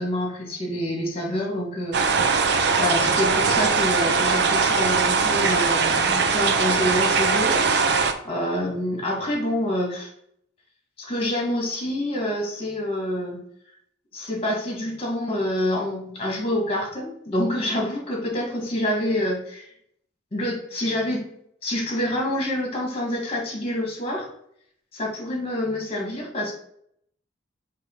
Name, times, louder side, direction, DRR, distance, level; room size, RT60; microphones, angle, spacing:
voice 1, 0.0-10.1 11.0-13.4 14.1-19.7 20.3-21.2 21.6-24.3 24.9-26.5, left 1 dB, 30° left, -1 dB, 2.1 m, -27 dB
sound 1, 1.9-8.1, right 5 dB, 60° right, 0.6 m, -21 dB
7.5 x 3.5 x 4.0 m, 0.70 s
head